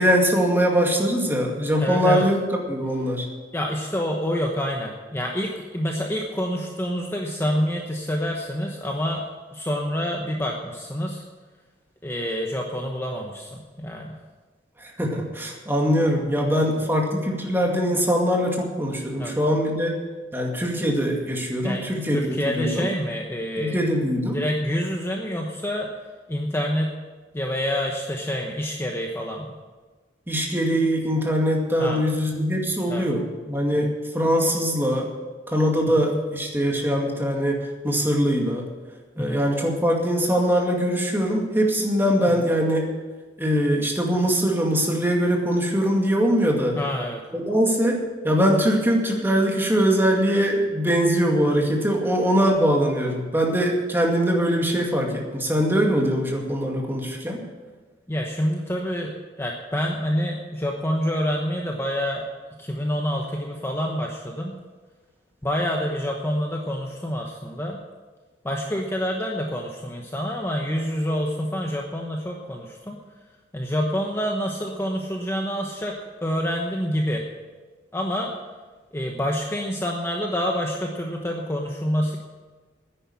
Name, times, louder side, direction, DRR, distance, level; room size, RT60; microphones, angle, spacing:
voice 1, 0.0-2.4 2.7-3.3 14.8-20.0 20.3-22.9 23.6-24.4 30.3-35.1 35.5-38.7 39.2-42.9 43.4-46.8 47.3-57.4, equal, 10° right, 0 dB, 2.2 m, -22 dB
voice 2, 1.8-2.3 3.5-9.2 9.5-11.2 12.0-14.2 15.9-16.0 16.6-16.9 19.2-19.4 21.6-23.8 24.3-25.9 26.3-27.0 27.3-29.5 31.8-32.0 32.9-33.1 39.2-39.5 46.8-47.2 58.1-62.2 62.6-64.6 65.4-67.8 68.4-73.0 73.5-77.2 77.9-78.3 78.9-82.2, equal, 15° left, 1 dB, 1.0 m, -27 dB
10.0 x 10.0 x 8.5 m, 1.3 s
head